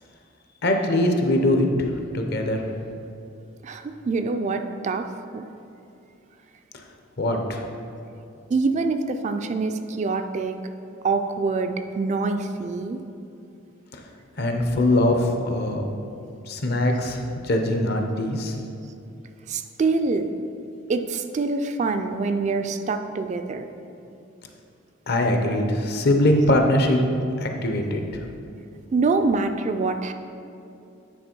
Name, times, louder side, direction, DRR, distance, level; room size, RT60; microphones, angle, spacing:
voice 1, 0.6-1.7 2.1-2.6 7.2-7.4 14.4-15.8 16.5-17.2 17.5-18.5 25.1-27.0 27.4-28.0, left 1 dB, 50° left, 3 dB, 0.7 m, -21 dB
voice 2, 3.6-5.1 5.3-5.4 8.5-10.6 11.0-13.0 19.5-20.3 20.9-23.6 28.9-30.1, right 3 dB, 35° right, 7 dB, 0.3 m, -25 dB
9.4 x 4.0 x 4.5 m, 2.6 s
head